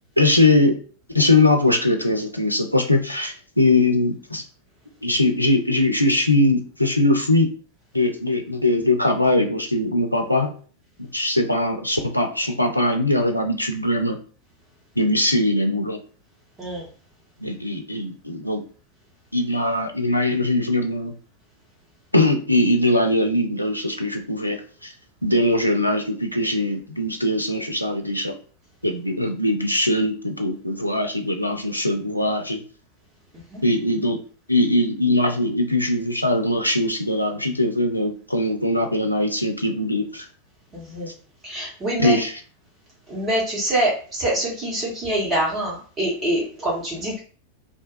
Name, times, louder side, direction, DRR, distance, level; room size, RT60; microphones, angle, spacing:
voice 1, 0.2-0.8 1.1-4.4 5.0-7.5 7.9-10.5 11.0-14.2 15.0-16.0 17.4-18.6 19.3-21.1 22.1-24.9 25.2-28.3 28.8-32.6 33.6-34.2 34.5-40.3 42.0-42.3, left 1 dB, 90° left, 4 dB, 0.4 m, -21 dB
voice 2, 40.7-41.1 41.4-42.2 43.1-47.2, right 1 dB, 20° right, -5 dB, 1.3 m, -25 dB
2.6 x 2.2 x 2.5 m, 0.41 s
figure-of-eight pair, 90°, 0 cm